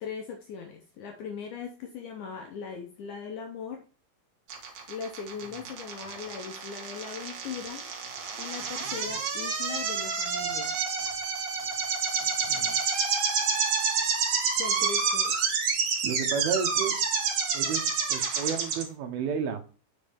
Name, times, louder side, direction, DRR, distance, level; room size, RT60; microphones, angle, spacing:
voice 1, 0.0-3.8 4.9-7.9 8.4-10.8 14.6-15.4, left 6 dB, 75° left, 1.8 m, -39 dB
sound 1, 4.5-18.8, right 5 dB, 60° right, 2.7 m, -28 dB
voice 2, 8.8-9.2 12.4-12.8 16.0-16.9 17.5-19.6, right 6 dB, 80° right, 2.9 m, -32 dB
8.4 x 5.4 x 3.5 m
omnidirectional pair, 4.3 m